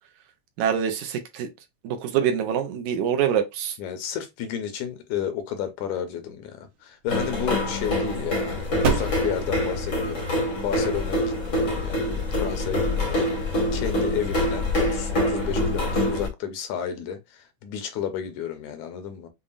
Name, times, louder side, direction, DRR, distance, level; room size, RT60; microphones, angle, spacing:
voice 1, 0.6-1.5 1.8-3.8, right 8 dB, 75° right, 2.0 m, -25 dB
voice 2, 3.8-19.3, left 9 dB, 75° left, 1.9 m, -32 dB
sound 1, 6.3-13.5, right 5 dB, 60° right, 1.4 m, -34 dB
sound 2, 7.1-16.3, left 1 dB, 55° left, 0.8 m, -25 dB
7.0 x 2.5 x 2.4 m
omnidirectional pair, 3.6 m